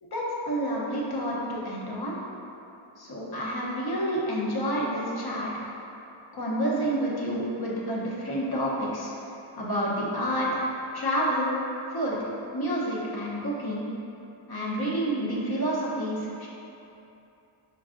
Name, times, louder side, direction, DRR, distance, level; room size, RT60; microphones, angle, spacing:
voice 1, 0.0-2.2 3.0-5.5 6.3-9.1 9.5-10.7 10.9-11.5 11.9-13.9 14.5-16.5, equal, 50° left, -5 dB, 0.8 m, -29 dB
4.6 x 3.5 x 2.4 m, 2.9 s
wide cardioid pair, 115°, 49 cm